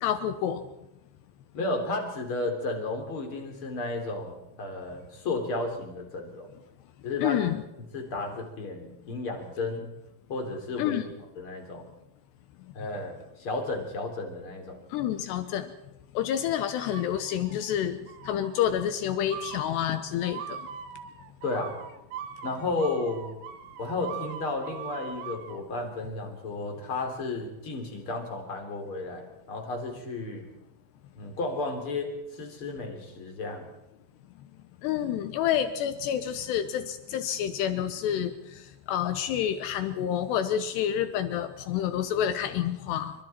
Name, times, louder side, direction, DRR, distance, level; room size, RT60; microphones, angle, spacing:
voice 1, 0.0-0.6 7.2-7.6 10.8-11.0 14.9-15.7 16.2-18.0 18.3-20.6 34.8-38.3 38.9-43.1, left 10 dB, 80° left, 10 dB, 2.5 m, -28 dB
voice 2, 1.5-6.5 7.0-7.4 7.8-9.9 10.3-11.0 11.3-11.9 12.7-14.8 21.4-21.8 22.4-23.3 23.8-30.5 31.1-33.7, left 2 dB, 30° left, 3 dB, 3.4 m, -33 dB
sound 1, 16.9-17.7 18.1-18.6 19.3-25.6, right 7 dB, 70° right, 3.1 m, -41 dB
27.0 x 24.5 x 4.4 m, 0.91 s
omnidirectional pair, 5.9 m